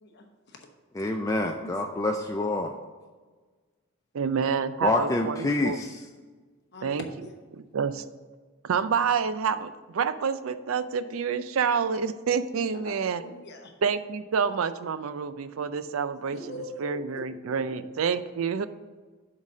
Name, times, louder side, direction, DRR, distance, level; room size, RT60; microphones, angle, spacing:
voice 1, 0.0-0.7 1.6-1.8 6.7-7.3 12.7-12.9 13.2-13.7 16.3-17.0 17.7-17.8, left 1 dB, 50° left, 3 dB, 1.0 m, -42 dB
voice 2, 1.0-2.7 4.8-6.1, left 2 dB, 15° left, 3 dB, 0.3 m, -27 dB
voice 3, 4.1-5.8 6.8-7.0 7.7-8.0 8.6-13.2 13.8-16.4 16.8-18.7, right 6 dB, 75° right, 13 dB, 0.4 m, -28 dB
7.3 x 4.0 x 6.1 m, 1.4 s
head